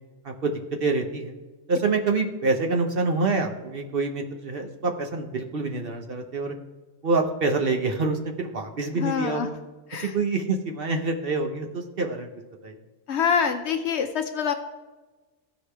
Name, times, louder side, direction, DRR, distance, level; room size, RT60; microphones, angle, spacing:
voice 1, 0.8-1.3 1.7-6.6 7.0-9.5 10.0-12.3 12.6-12.7, right 3 dB, 50° right, 3 dB, 0.9 m, -26 dB
voice 2, 8.9-9.5 9.9-10.1 13.1-14.5, left 6 dB, 65° left, 8 dB, 0.8 m, -25 dB
14.5 x 4.9 x 3.3 m, 1.2 s
omnidirectional pair, 1.4 m